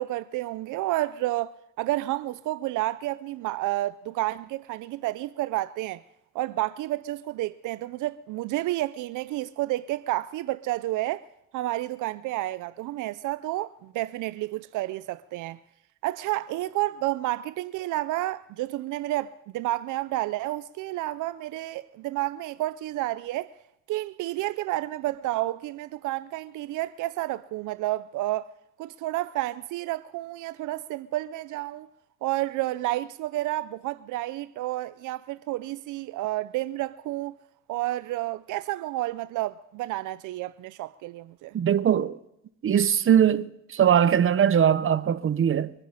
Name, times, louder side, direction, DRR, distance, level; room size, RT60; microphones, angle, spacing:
voice 1, 0.0-6.0 6.3-11.2 11.5-15.6 16.0-23.5 23.9-28.5 28.8-31.9 32.2-37.3 37.7-41.6, right 16 dB, 85° right, 0.5 m, -30 dB
voice 2, 41.5-42.2 42.6-45.7, right 9 dB, 45° right, 0.8 m, -21 dB
24.0 x 9.9 x 5.6 m
cardioid pair, 90°, 30 cm